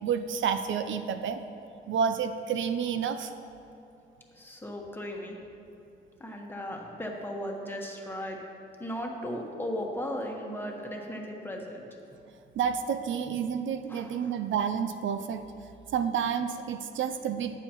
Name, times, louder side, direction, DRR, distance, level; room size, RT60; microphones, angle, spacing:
voice 1, 0.0-1.4 1.9-3.3 12.6-15.4 15.9-17.6, right 7 dB, 80° right, 9 dB, 0.5 m, -29 dB
voice 2, 4.3-5.4 6.2-8.4 8.8-11.8 13.9-14.4, equal, 10° left, 0 dB, 1.3 m, -36 dB
14.5 x 9.0 x 3.0 m, 2.8 s
cardioid pair, 115°, 20 cm